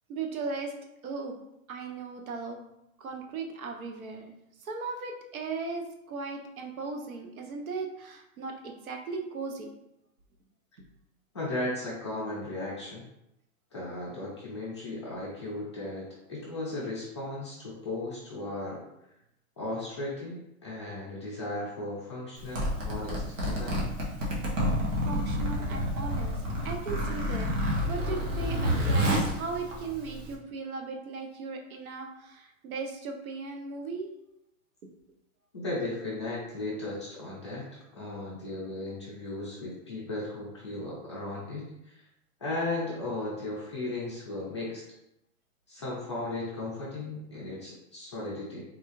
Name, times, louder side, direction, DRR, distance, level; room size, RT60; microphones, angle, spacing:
voice 1, 0.1-0.7 1.0-1.4 1.7-2.6 3.0-4.3 4.6-9.7 25.0-26.4 26.6-27.5 27.8-34.1, right 4 dB, 80° right, 2 dB, 0.9 m, -37 dB
voice 2, 11.3-13.1 13.7-18.8 19.6-23.8 35.5-37.7 37.9-42.0 42.4-44.8 45.7-48.6, left 2 dB, 20° left, -6 dB, 0.4 m, -36 dB
Zipper (clothing), 22.4-30.3, equal, 60° right, 1.2 m, -29 dB
3.9 x 2.4 x 3.0 m, 0.85 s
hypercardioid pair, 170°, 42 cm